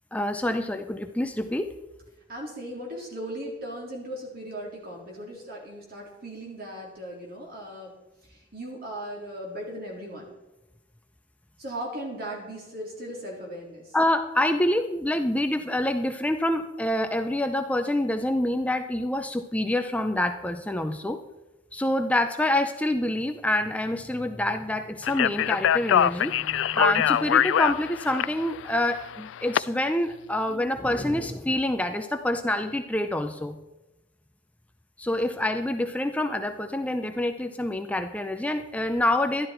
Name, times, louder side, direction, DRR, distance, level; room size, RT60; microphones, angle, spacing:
voice 1, 0.1-1.7 13.9-21.2 21.7-33.6 35.0-39.5, left 1 dB, 10° left, 7 dB, 0.5 m, -26 dB
voice 2, 2.3-7.9 8.3-10.3 11.6-13.8, right 1 dB, 55° right, -2 dB, 3.7 m, -37 dB
Speech, 25.0-29.6, left 10 dB, 80° left, 0.3 m, -24 dB
12.0 x 11.5 x 4.5 m, 1.0 s
head